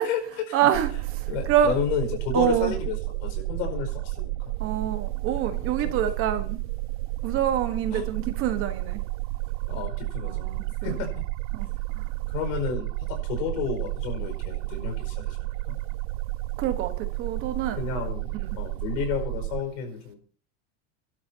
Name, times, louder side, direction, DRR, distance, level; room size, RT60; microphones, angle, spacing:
voice 1, 0.0-0.7 1.3-4.3 5.6-5.9 7.9-8.1 9.7-10.5 10.8-11.3 12.3-15.8 17.7-20.2, left 7 dB, 80° left, 5.1 m, -32 dB
voice 2, 0.5-1.8 2.3-2.7 4.6-6.6 7.2-9.0 10.2-10.6 11.5-11.7 12.0-12.1 16.6-17.8 18.4-18.6, right 10 dB, 35° right, 1.3 m, -26 dB
sound 1, 0.7-19.6, right 20 dB, 75° right, 0.9 m, -32 dB
29.5 x 12.0 x 2.8 m
cardioid pair, 180°, 38 cm